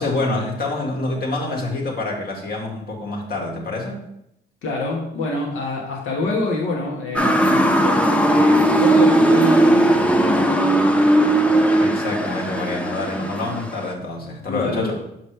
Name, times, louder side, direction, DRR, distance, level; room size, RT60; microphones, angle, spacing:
voice 1, 0.0-4.0 11.8-15.0, left 2 dB, 50° left, -1 dB, 1.8 m, -26 dB
voice 2, 4.6-11.0 13.2-13.3 14.5-15.0, left 2 dB, 85° left, -1 dB, 1.5 m, -27 dB
Motor vehicle (road) / Siren, 7.1-13.9, right 1 dB, 5° left, 0.6 m, -17 dB
6.3 x 5.3 x 3.3 m, 0.78 s
cardioid pair, 90°, 20 cm